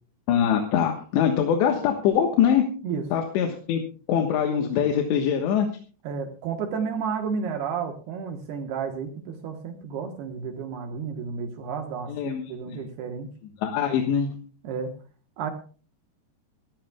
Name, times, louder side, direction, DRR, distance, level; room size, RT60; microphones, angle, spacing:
voice 1, 0.3-2.6 3.1-3.8 4.1-5.7 12.1-12.8 13.6-14.3, left 8 dB, 85° left, 3 dB, 3.5 m, -23 dB
voice 2, 6.0-13.3 14.6-14.9 15.4-15.5, right 6 dB, 70° right, 4 dB, 3.1 m, -32 dB
24.5 x 13.5 x 2.3 m, 0.39 s
omnidirectional pair, 4.9 m